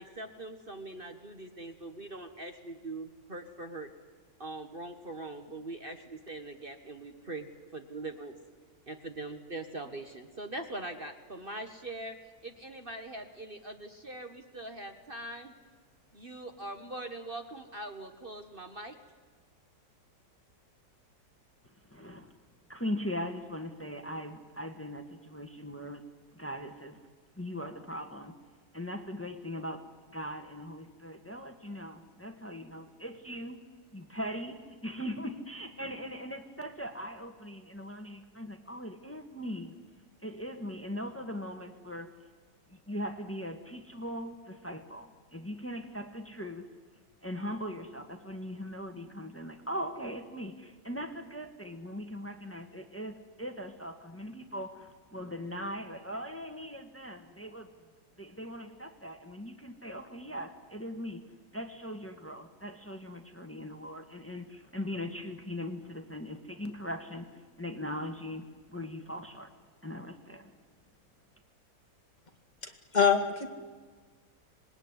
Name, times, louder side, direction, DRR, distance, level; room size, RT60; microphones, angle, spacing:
voice 1, 0.0-3.9 4.4-8.4 8.9-12.2 12.4-15.5 16.1-18.9, right 2 dB, 35° right, 6 dB, 1.5 m, -42 dB
voice 2, 21.8-22.3 22.7-26.0 26.3-27.0 27.4-28.3 28.7-33.6 33.9-39.8 40.2-42.1 42.7-46.7 47.2-57.7 58.2-61.2 61.5-69.5 69.8-70.5, equal, 10° left, 6 dB, 1.5 m, -40 dB
voice 3, 72.6-73.5, left 7 dB, 25° left, 4 dB, 2.2 m, -25 dB
26.0 x 20.0 x 9.8 m, 1.5 s
omnidirectional pair, 1.9 m